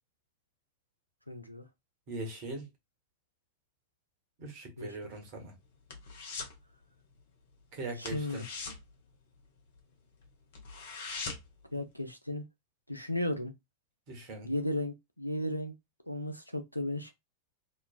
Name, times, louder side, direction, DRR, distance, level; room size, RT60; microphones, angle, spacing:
voice 1, 1.3-1.6 4.8-5.1 8.0-8.4 11.7-12.4 12.9-13.5 14.4-15.7 16.1-17.1, left 1 dB, 90° left, 0.5 m, -35 dB
voice 2, 2.1-2.7 4.4-5.5 7.7-8.4 14.1-14.5, right 2 dB, 45° right, 1.2 m, -40 dB
sound 1, 5.0-6.6 6.9-7.2 7.5-7.6 8.0-9.8 10.2-10.3 10.5-11.6 12.0-12.1, left 4 dB, 55° left, 0.8 m, -42 dB
3.0 x 2.3 x 2.3 m
figure-of-eight pair, 90°, 0 cm